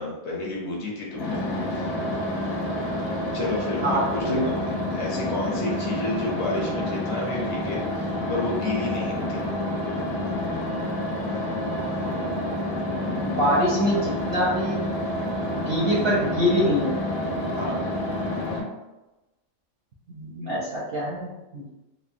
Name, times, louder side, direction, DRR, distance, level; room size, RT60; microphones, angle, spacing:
voice 1, 0.0-1.4 1.7-2.0 3.3-4.6 4.9-9.5 15.8-16.0 17.5-17.8, left 2 dB, 60° left, -3 dB, 0.9 m, -31 dB
sound 1, 1.1-18.6, left 1 dB, 90° left, 1.1 m, -28 dB
voice 2, 3.8-4.4 13.2-14.8 15.5-16.9 20.1-21.7, equal, 60° right, -5 dB, 0.6 m, -24 dB
3.0 x 2.1 x 2.5 m, 1.0 s
omnidirectional pair, 1.4 m